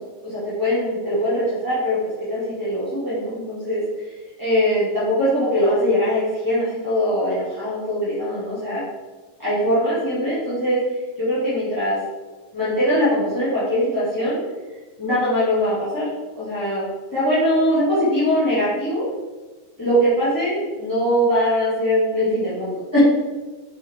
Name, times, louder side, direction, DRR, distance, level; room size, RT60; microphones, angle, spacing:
voice 1, 0.2-4.1 4.4-8.8 9.4-10.8 11.2-12.0 12.5-14.4 15.0-16.1 16.3-19.0 19.8-23.0, equal, 10° left, -13 dB, 1.3 m, -22 dB
6.3 x 5.1 x 3.6 m, 1.3 s
omnidirectional pair, 3.8 m